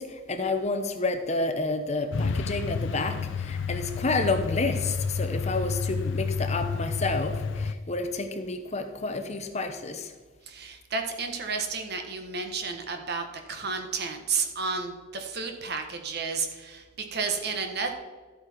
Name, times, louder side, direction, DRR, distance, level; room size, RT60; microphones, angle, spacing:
voice 1, 0.0-10.1, left 3 dB, 35° left, 8 dB, 0.9 m, -30 dB
Truck, 2.1-7.7, left 5 dB, 70° left, 0.5 m, -30 dB
voice 2, 10.5-16.8 17.1-17.9, right 4 dB, 55° right, 5 dB, 1.6 m, -31 dB
13.0 x 8.4 x 4.6 m, 1.4 s
head